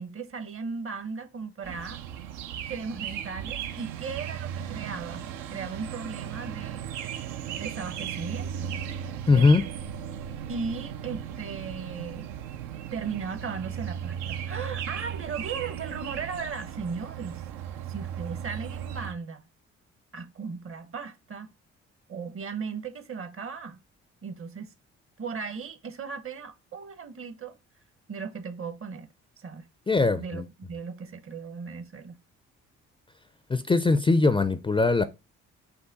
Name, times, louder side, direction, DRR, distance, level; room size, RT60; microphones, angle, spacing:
voice 1, 0.0-2.0 2.7-6.9 7.6-8.8 9.3-9.5 10.5-12.3 12.9-17.4 17.9-19.4 20.1-21.5 22.1-23.8 24.2-24.7 25.2-27.6 28.1-29.1 29.4-29.6 30.2-32.2, right 5 dB, 45° right, 0.8 m, -37 dB
sound 1, 1.6-19.1, right 9 dB, 85° right, 0.5 m, -36 dB
voice 2, 9.3-9.6 29.9-30.4 33.5-35.0, left 3 dB, 15° left, 0.4 m, -21 dB
5.5 x 2.1 x 3.9 m
supercardioid pair, 55°, 30 cm